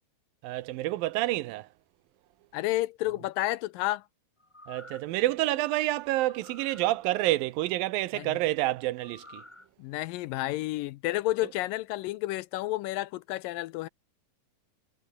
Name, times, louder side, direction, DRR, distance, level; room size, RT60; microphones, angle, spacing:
voice 1, 0.4-1.7 4.7-9.4, right 16 dB, 80° right, 2.4 m, -28 dB
voice 2, 2.5-4.0 8.1-8.4 9.8-13.9, left 17 dB, 80° left, 2.2 m, -31 dB
sound 1, 4.4-5.2 6.2-6.9 9.0-9.7 10.1-10.2, left 2 dB, 10° left, 1.4 m, -50 dB
omnidirectional pair, 4.2 m